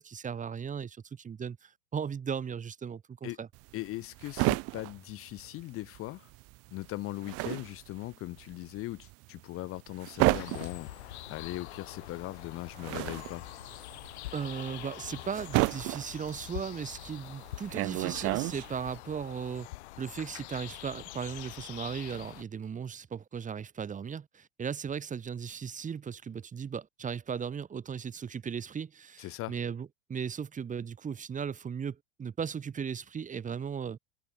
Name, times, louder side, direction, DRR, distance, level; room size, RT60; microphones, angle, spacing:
voice 1, 0.0-3.5 14.3-19.7 20.0-34.0, right 7 dB, 20° right, 2.3 m, -37 dB
sound 1, 3.5-6.1 6.3-19.0, right 24 dB, 40° right, 0.8 m, -32 dB
voice 2, 3.7-6.3 6.7-13.5 29.2-29.5, left 18 dB, 40° left, 1.1 m, -39 dB
sound 2, 10.3-22.4, left 18 dB, 65° left, 3.3 m, -45 dB
hypercardioid pair, 100°, 36 cm